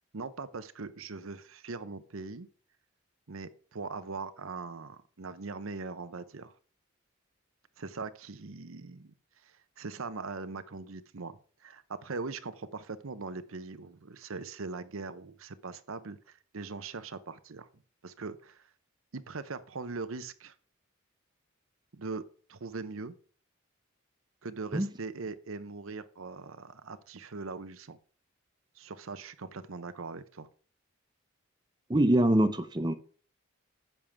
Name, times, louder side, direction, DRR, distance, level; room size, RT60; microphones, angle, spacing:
voice 1, 0.0-2.5 3.3-6.5 7.8-9.1 9.4-17.7 18.0-18.7 19.1-20.5 21.9-22.2 22.5-23.1 24.4-28.0 28.8-30.5, right 4 dB, 70° right, 13 dB, 0.8 m, -41 dB
voice 2, 31.9-32.9, right 1 dB, 20° right, 10 dB, 0.7 m, -24 dB
10.0 x 7.3 x 3.5 m, 0.42 s
head